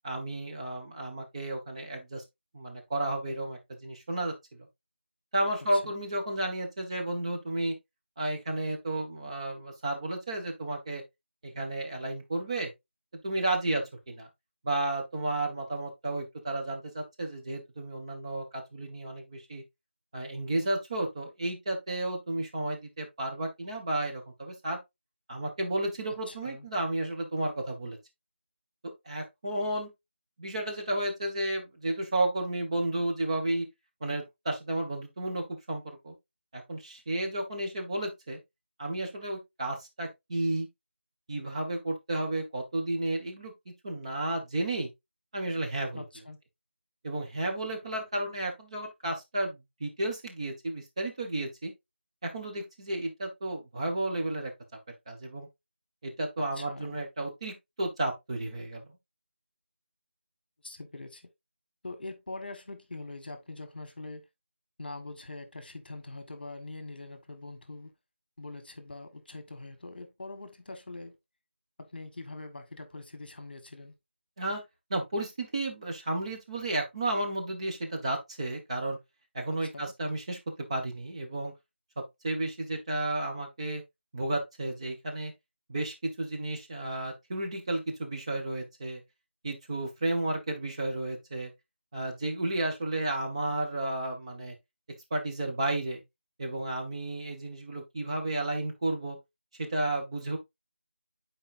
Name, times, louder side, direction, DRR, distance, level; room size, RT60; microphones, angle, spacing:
voice 1, 0.0-2.2 2.5-4.7 5.3-7.7 8.2-11.0 11.4-12.7 13.2-14.3 14.6-19.6 20.1-24.8 25.3-28.0 29.0-29.9 30.4-33.7 34.0-36.1 36.5-38.4 38.8-40.7 41.3-44.9 45.3-46.0 47.0-51.7 52.2-54.5 55.1-55.5 56.0-58.9 74.4-74.6 74.9-79.0 79.3-81.5 82.2-83.8 84.1-85.3 85.7-89.0 89.4-91.5 91.9-94.5 95.1-96.0 96.4-99.2 99.6-100.4, right 1 dB, 30° right, 1.5 m, -32 dB
voice 2, 26.3-26.7 45.9-46.4 56.5-57.0 60.6-61.2 61.8-64.2 64.8-67.9 68.4-71.2 71.8-73.9 79.5-79.9, left 2 dB, 50° left, 1.3 m, -43 dB
9.9 x 4.3 x 2.5 m
figure-of-eight pair, 165°, 6 cm